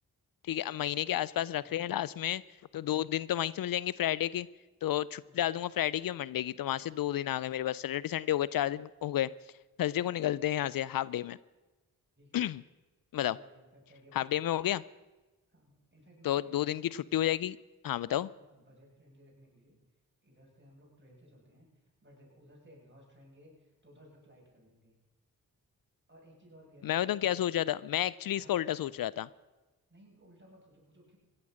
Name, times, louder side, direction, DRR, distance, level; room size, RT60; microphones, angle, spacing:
voice 1, 0.4-2.4 2.7-4.5 4.8-9.3 9.8-11.4 12.3-12.6 13.1-13.4 14.1-14.8 16.2-17.6 17.8-18.3 26.8-29.3, left 12 dB, 70° left, 21 dB, 0.5 m, -31 dB
voice 2, 1.5-1.9 5.2-5.5 12.2-12.4 13.1-14.5 15.5-17.0 17.9-19.8 20.2-21.7 22.0-24.9 26.1-27.0 27.3-27.7 28.3-28.9 29.9-31.2, equal, 30° right, -2 dB, 7.0 m, -59 dB
16.0 x 11.0 x 6.4 m, 1.2 s
cardioid pair, 40°, 36 cm